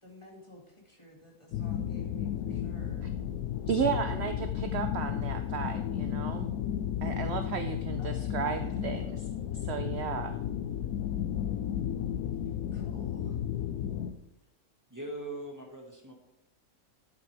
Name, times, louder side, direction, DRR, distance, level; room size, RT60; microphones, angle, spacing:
voice 1, 0.0-3.1 8.0-8.9 12.7-13.4, left 1 dB, 20° left, -2 dB, 2.2 m, -53 dB
sound 1, 1.5-14.1, left 10 dB, 80° left, 1.2 m, -33 dB
voice 2, 3.7-6.5 7.0-9.2 9.6-10.4, right 7 dB, 60° right, 8 dB, 0.7 m, -34 dB
voice 3, 14.9-16.1, right 1 dB, 10° right, -1 dB, 1.8 m, -40 dB
11.0 x 8.2 x 3.4 m, 0.88 s
omnidirectional pair, 1.6 m